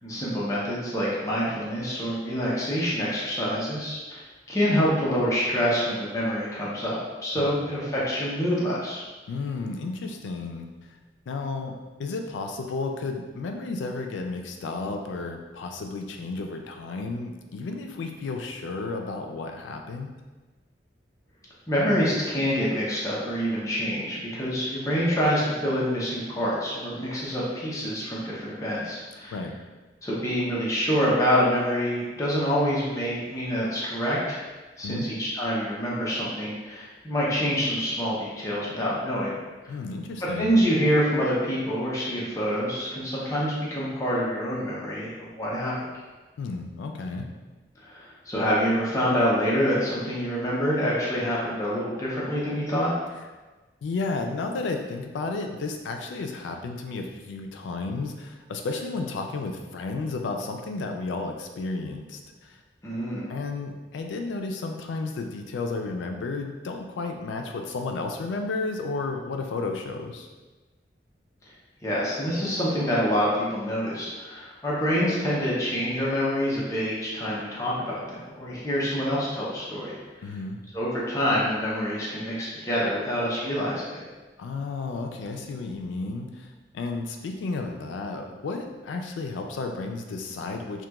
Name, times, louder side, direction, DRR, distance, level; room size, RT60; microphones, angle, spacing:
voice 1, 0.0-4.2 4.5-9.0 21.7-29.3 30.0-34.4 34.8-39.4 40.2-45.8 47.8-52.9 62.8-63.3 71.8-79.9 80.7-84.0, equal, 20° left, -7 dB, 0.5 m, -26 dB
voice 2, 9.3-11.0 11.3-11.7 12.0-20.1 29.3-29.5 34.8-35.1 39.7-40.5 46.4-47.3 53.8-62.6 63.3-70.3 80.2-80.6 84.4-90.9, left 3 dB, 90° left, 4 dB, 0.3 m, -32 dB
2.9 x 2.2 x 2.2 m, 1.2 s
head